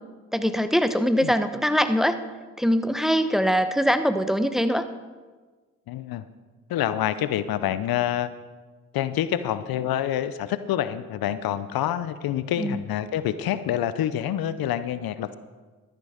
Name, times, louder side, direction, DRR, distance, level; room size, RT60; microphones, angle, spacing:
voice 1, 0.3-2.2 2.6-4.8 12.6-12.8, equal, ahead, 10 dB, 1.0 m, -22 dB
voice 2, 5.9-6.2 6.7-8.3 8.9-15.4, left 11 dB, 75° left, 14 dB, 0.7 m, -27 dB
13.0 x 10.5 x 5.0 m, 1.4 s
supercardioid pair, 50°, 37 cm